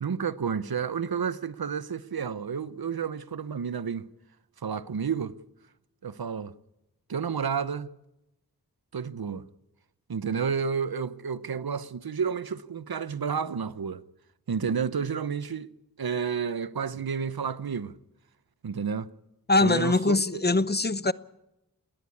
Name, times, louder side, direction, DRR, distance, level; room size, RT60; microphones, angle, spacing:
voice 1, 0.0-4.1 4.6-5.4 6.0-6.5 7.1-7.9 8.9-9.5 10.1-14.0 14.5-15.7 16.0-18.0 18.6-19.1 19.6-20.2, right 6 dB, 75° right, 0.8 m, -30 dB
voice 2, 19.5-21.1, left 2 dB, 25° left, 0.7 m, -23 dB
19.5 x 19.0 x 8.6 m
wide cardioid pair, 50°, 37 cm